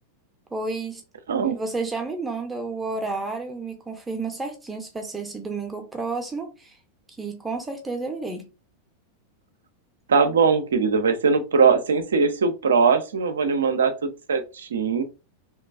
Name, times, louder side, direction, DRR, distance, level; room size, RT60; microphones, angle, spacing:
voice 1, 0.5-1.0 1.4-6.8 7.2-8.5, right 3 dB, 10° right, 0.6 m, -31 dB
voice 2, 10.1-15.0, right 5 dB, 65° right, 0.4 m, -21 dB
2.8 x 2.2 x 2.3 m
figure-of-eight pair, 90°, 0 cm